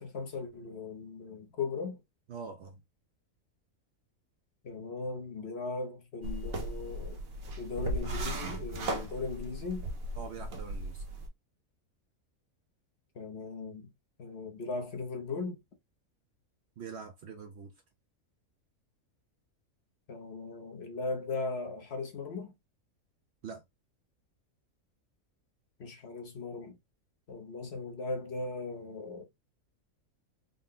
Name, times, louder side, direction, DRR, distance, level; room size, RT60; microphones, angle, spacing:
voice 1, 0.0-2.0 4.6-7.2 7.6-9.9 13.1-13.9 14.2-15.6 20.1-22.5 25.8-26.8 27.3-29.2, left 3 dB, 55° left, 1.0 m, -38 dB
voice 2, 2.3-2.8 10.2-11.0 16.8-17.7 23.4-23.6, right 5 dB, 65° right, 0.7 m, -44 dB
sound 1, 6.2-11.3, right 1 dB, 85° right, 1.4 m, -37 dB
3.8 x 2.1 x 3.7 m
omnidirectional pair, 1.5 m